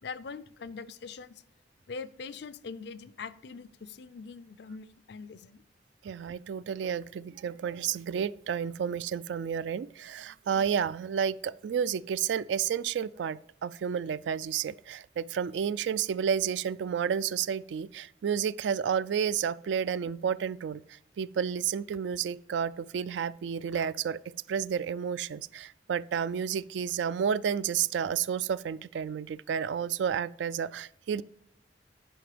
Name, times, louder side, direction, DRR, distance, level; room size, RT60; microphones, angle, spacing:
voice 1, 0.0-1.4 1.9-5.6, left 5 dB, 70° left, 0.5 m, -42 dB
voice 2, 6.0-20.8 21.2-24.2 24.5-31.2, right 7 dB, 80° right, 0.3 m, -31 dB
10.0 x 5.1 x 5.0 m
head